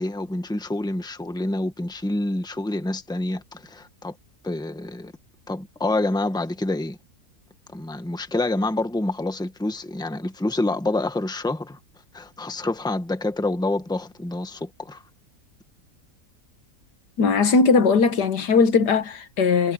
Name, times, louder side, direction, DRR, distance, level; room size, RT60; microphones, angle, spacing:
voice 1, 0.0-4.1 4.4-5.1 5.5-7.0 7.7-11.8 12.1-15.0, left 2 dB, 5° left, 1.3 m, -27 dB
voice 2, 17.2-19.7, left 4 dB, 85° left, 2.0 m, -19 dB
omnidirectional pair, 1.7 m